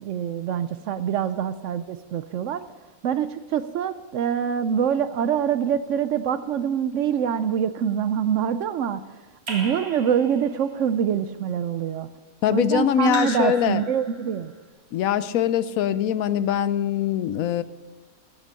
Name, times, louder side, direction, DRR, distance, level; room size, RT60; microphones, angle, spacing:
voice 1, 0.0-2.6 3.0-9.0 9.5-12.1 12.5-14.5, right 8 dB, 70° right, 13 dB, 0.8 m, -25 dB
Raindrop / Drip, 9.5-10.7 13.1-14.4, right 2 dB, 45° right, 2.2 m, -36 dB
voice 2, 12.4-13.8 14.9-17.6, left 10 dB, 75° left, 15 dB, 1.0 m, -23 dB
12.5 x 8.1 x 6.8 m, 1.2 s
omnidirectional pair, 1.5 m